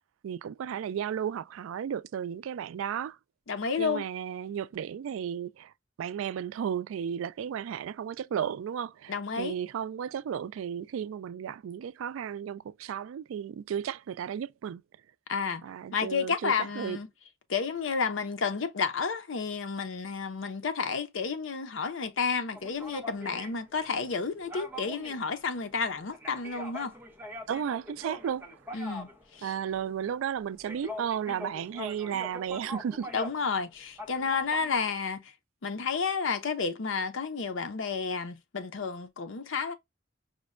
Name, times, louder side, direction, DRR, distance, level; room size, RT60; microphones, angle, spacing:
voice 1, 0.2-3.2 3.8-5.7 6.0-14.8 15.6-17.0 27.5-28.5 29.4-33.1, right 8 dB, 85° right, 0.3 m, -34 dB
voice 2, 3.5-4.0 9.1-9.6 15.3-15.6 15.9-17.1 17.5-26.9 28.7-29.5 33.1-35.3 35.6-39.7, left 5 dB, 80° left, 0.6 m, -31 dB
sound 1, 22.5-33.6 33.9-34.8, equal, 10° right, 0.5 m, -43 dB
5.0 x 2.1 x 2.3 m
head